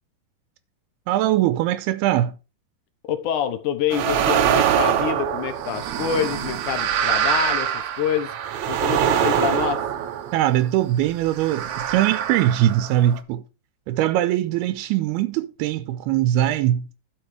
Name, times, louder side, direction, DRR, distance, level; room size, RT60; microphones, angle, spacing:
voice 1, 1.1-2.4 10.3-13.4 13.9-16.9, right 13 dB, 90° right, 2.7 m, -21 dB
voice 2, 3.1-8.3 8.7-9.9, left 9 dB, 70° left, 2.0 m, -26 dB
sound 1, 3.9-10.7 11.3-13.2, right 9 dB, 70° right, 1.9 m, -24 dB
11.5 x 6.2 x 4.7 m
omnidirectional pair, 4.4 m